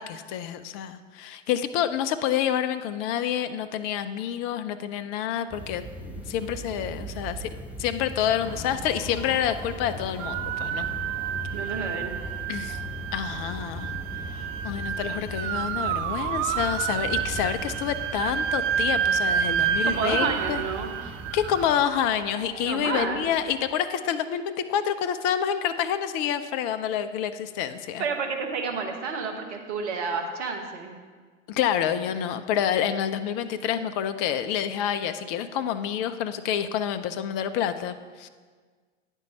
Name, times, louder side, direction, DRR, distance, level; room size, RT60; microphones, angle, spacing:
voice 1, 0.0-7.5 7.8-10.9 12.5-12.8 13.1-13.9 14.3-20.6 21.3-28.0 31.5-38.3, left 9 dB, 50° left, 10 dB, 0.5 m, -28 dB
sound 1, 5.5-21.8, right 1 dB, 5° right, 0.7 m, -39 dB
sound 2, 8.4-17.8, right 1 dB, 55° right, 2.6 m, -44 dB
sound 3, 10.2-23.3, right 8 dB, 40° right, 0.4 m, -30 dB
voice 2, 11.5-12.1 19.8-20.9 22.6-23.2 28.0-31.0, right 4 dB, 70° right, 4 dB, 1.2 m, -30 dB
9.4 x 4.5 x 5.3 m, 1.5 s
figure-of-eight pair, 75°, 36 cm